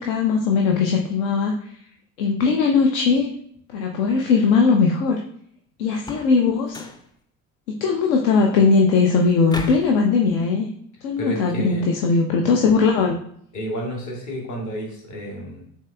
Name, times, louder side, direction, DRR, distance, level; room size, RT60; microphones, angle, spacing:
voice 1, 0.0-1.7 2.2-3.3 3.7-5.2 5.8-6.8 7.8-10.7 11.0-13.2, left 4 dB, 65° left, 2 dB, 0.7 m, -19 dB
sound 1, 5.9-6.4 6.7-7.1 9.5-10.0, left 2 dB, 10° left, 0.4 m, -35 dB
voice 2, 11.2-11.8 13.5-15.6, equal, 40° left, -1 dB, 1.8 m, -30 dB
7.2 x 2.9 x 2.3 m, 0.66 s
figure-of-eight pair, 55°, 46 cm